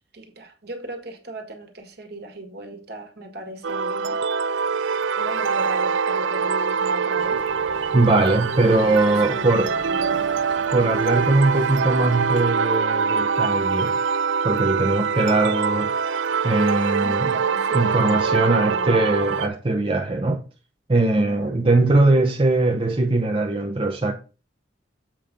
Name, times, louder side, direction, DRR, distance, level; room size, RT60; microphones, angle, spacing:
voice 1, 0.1-4.2 5.2-7.4 8.5-10.5 17.0-19.0 21.2-21.6, equal, 60° right, 1.7 m, -36 dB
sound 1, 3.6-19.5, right 6 dB, 75° right, 0.5 m, -24 dB
Bird vocalization bird call bird song, 7.2-12.4, left 2 dB, 85° left, 1.2 m, -44 dB
voice 2, 7.9-9.7 10.7-14.0 14.4-15.9 16.4-17.3 17.7-20.4 20.9-24.1, right 2 dB, 30° right, 0.7 m, -20 dB
7.6 x 5.0 x 5.2 m
head